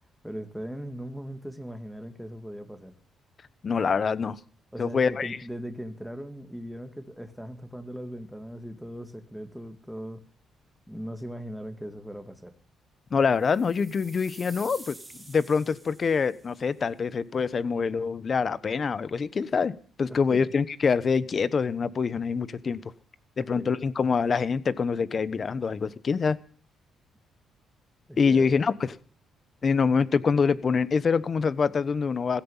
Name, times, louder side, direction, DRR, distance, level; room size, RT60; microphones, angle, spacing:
voice 1, 0.2-3.0 4.7-10.2 10.9-12.6 20.1-20.5 23.4-23.8 28.1-28.7, equal, ahead, 7 dB, 2.4 m, -39 dB
voice 2, 3.6-4.4 4.8-5.4 13.1-15.0 15.3-19.7 20.0-22.8 23.4-26.4 28.2-28.9 29.6-32.4, left 5 dB, 40° left, 17 dB, 1.1 m, -25 dB
sound 1, 13.3-16.5, right 2 dB, 15° right, 5.2 m, -48 dB
16.0 x 15.0 x 5.7 m, 0.43 s
cardioid pair, 90°, 0 cm